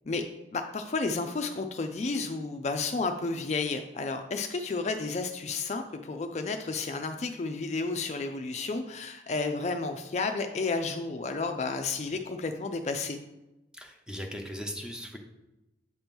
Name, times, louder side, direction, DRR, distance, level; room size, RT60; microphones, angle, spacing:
voice 1, 0.5-13.2, left 3 dB, 40° left, 6 dB, 0.4 m, -32 dB
voice 2, 13.7-15.2, equal, 5° right, 2 dB, 0.7 m, -38 dB
7.9 x 2.9 x 5.2 m, 0.95 s
head